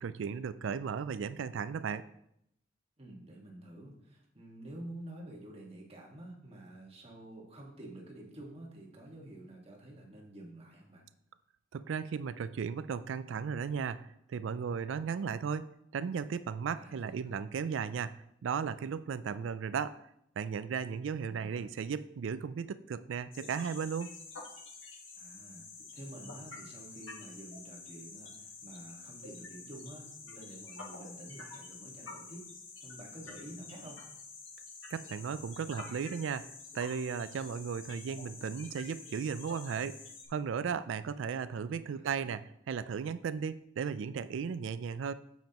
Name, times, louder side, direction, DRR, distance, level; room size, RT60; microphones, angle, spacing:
voice 1, 0.0-2.0 11.7-20.0 20.4-24.1 34.9-36.5 36.7-40.0 40.3-45.1, right 6 dB, 75° right, 14 dB, 0.4 m, -36 dB
voice 2, 3.0-11.0 16.8-17.3 21.2-21.7 25.1-32.4 32.8-34.0 41.9-42.3, right 1 dB, 30° right, -1 dB, 1.6 m, -49 dB
sound 1, 23.3-40.3, left 4 dB, 85° left, 1.5 m, -48 dB
8.8 x 7.3 x 2.9 m, 0.76 s
head